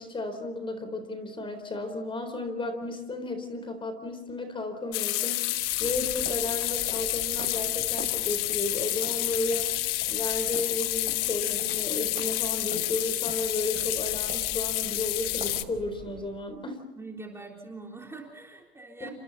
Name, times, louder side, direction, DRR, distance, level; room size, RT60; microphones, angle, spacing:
voice 1, 0.0-9.8 10.1-16.8 19.0-19.1, left 2 dB, 15° left, 8 dB, 4.2 m, -33 dB
sound 1, 4.9-15.6, left 18 dB, 70° left, 1.3 m, -29 dB
sound 2, 5.5-16.4, right 5 dB, 25° right, 7.1 m, -46 dB
voice 2, 17.0-19.1, right 3 dB, 10° right, 0 dB, 3.7 m, -43 dB
30.0 x 26.0 x 4.2 m, 1.2 s
supercardioid pair, 130°, 30 cm